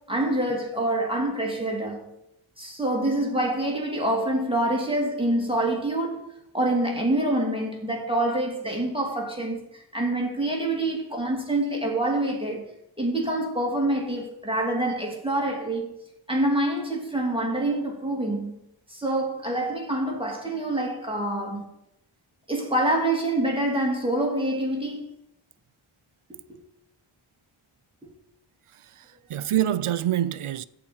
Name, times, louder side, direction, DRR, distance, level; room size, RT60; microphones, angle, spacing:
voice 1, 0.1-2.1 2.6-12.7 13.0-16.0 16.3-18.6 18.9-21.7 22.5-25.0, right 1 dB, 10° right, 2.7 m, -26 dB
voice 2, 28.7-30.6, right 11 dB, 80° right, 0.6 m, -26 dB
14.0 x 4.9 x 8.6 m
wide cardioid pair, 75°, 50 cm